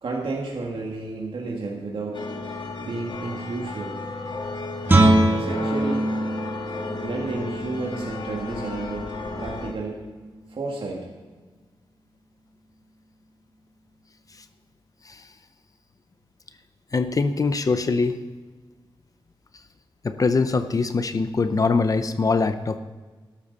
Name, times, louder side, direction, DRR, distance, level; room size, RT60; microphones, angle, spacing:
voice 1, 0.0-2.3 2.8-4.0 5.3-6.2 6.9-10.1 10.5-11.1, right 3 dB, 70° right, -2 dB, 1.9 m, -32 dB
sound 1, 2.1-9.7, left 3 dB, 60° left, 1.7 m, -34 dB
Guitar, 4.8-10.4, right 1 dB, 20° right, 1.6 m, -24 dB
voice 2, 16.9-18.2 20.0-22.8, left 4 dB, 40° left, 10 dB, 0.6 m, -23 dB
13.5 x 12.0 x 4.1 m, 1.4 s
wide cardioid pair, 130°, 9 cm